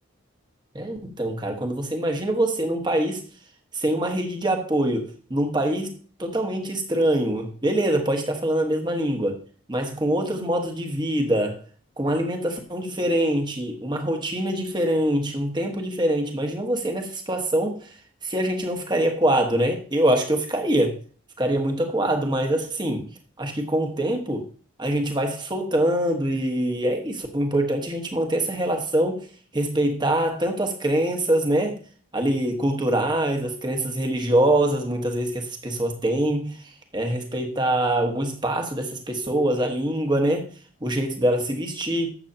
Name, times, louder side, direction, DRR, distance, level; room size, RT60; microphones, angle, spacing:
voice 1, 0.7-3.2 3.7-5.9 6.2-9.4 9.7-11.6 12.0-17.9 18.2-21.0 21.4-23.1 23.4-24.5 24.8-29.3 29.5-31.8 32.1-40.5 40.8-42.1, right 1 dB, 20° right, 3 dB, 1.4 m, -24 dB
12.0 x 7.9 x 2.9 m, 0.42 s
head